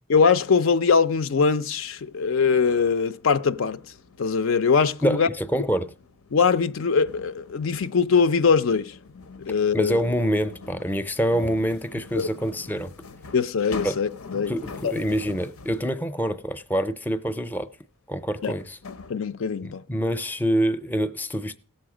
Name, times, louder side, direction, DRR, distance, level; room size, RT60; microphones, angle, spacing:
voice 1, 0.1-3.8 4.2-5.3 6.3-9.0 9.5-10.0 12.1-12.3 13.3-14.5 14.8-15.0 18.4-18.5 19.1-19.8, left 5 dB, 65° left, 0.5 m, -22 dB
sound 1, 1.1-16.0 17.8-17.9 18.6-19.1, left 4 dB, 90° left, 0.8 m, -44 dB
voice 2, 5.0-5.9 9.7-12.9 13.8-14.0 14.3-17.7 18.1-18.8 19.6-21.6, equal, 10° left, 0.5 m, -26 dB
17.0 x 7.0 x 4.9 m
head